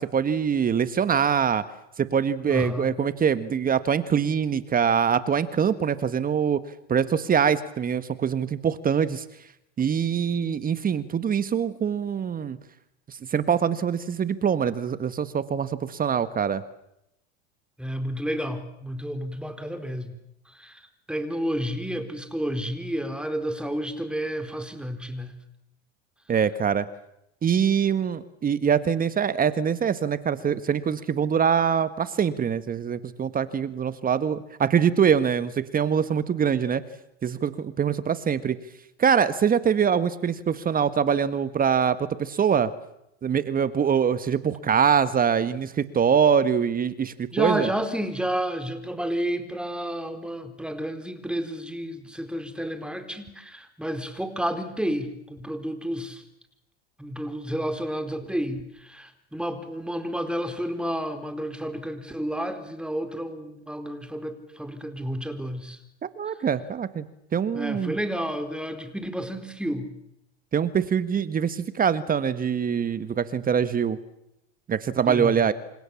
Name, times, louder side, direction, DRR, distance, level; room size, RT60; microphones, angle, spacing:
voice 1, 0.0-1.6 2.0-6.6 6.9-9.2 9.8-12.6 13.1-16.6 26.3-26.9 27.4-36.8 37.2-38.6 39.0-42.7 43.2-47.7 66.0-67.0 67.3-68.0 70.5-74.0 74.7-75.5, right 7 dB, 25° right, 13 dB, 1.6 m, -24 dB
voice 2, 2.5-2.9 17.8-20.2 20.5-25.3 47.3-56.2 57.0-65.8 67.5-69.9 75.1-75.3, equal, 5° right, 8 dB, 4.2 m, -31 dB
28.5 x 26.5 x 7.2 m, 0.81 s
hypercardioid pair, 105°, 34 cm